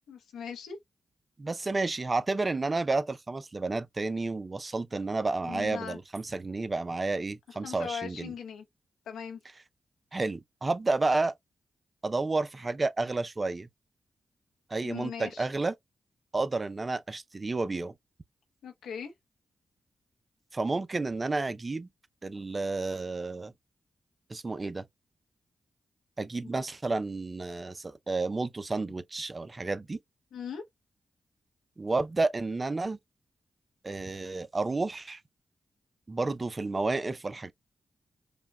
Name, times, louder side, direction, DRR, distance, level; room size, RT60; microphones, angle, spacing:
voice 1, 0.1-0.8 5.4-6.0 7.6-8.6 9.1-9.4 14.8-15.5 18.6-19.1 26.4-26.5 30.3-30.6, left 7 dB, 85° left, 0.9 m, -39 dB
voice 2, 1.4-8.3 10.1-11.3 12.0-13.7 14.7-15.7 16.3-17.9 20.5-21.9 22.2-23.5 24.3-24.8 26.2-30.0 31.8-33.0 33.8-35.2 36.1-37.5, right 3 dB, 40° right, 0.5 m, -31 dB
5.0 x 2.2 x 2.2 m
supercardioid pair, 45°, 0 cm